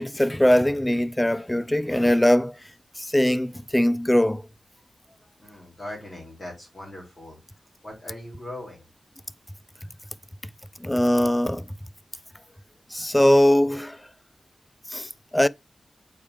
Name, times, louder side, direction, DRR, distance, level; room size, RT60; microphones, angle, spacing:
voice 1, 0.0-2.5 3.0-4.4 10.8-11.7 12.9-14.0 14.9-15.5, left 1 dB, 10° left, 0.4 m, -21 dB
voice 2, 5.4-7.4 7.8-8.9, left 1 dB, 30° left, 3.8 m, -40 dB
7.2 x 4.8 x 3.3 m
wide cardioid pair, 80°, 0 cm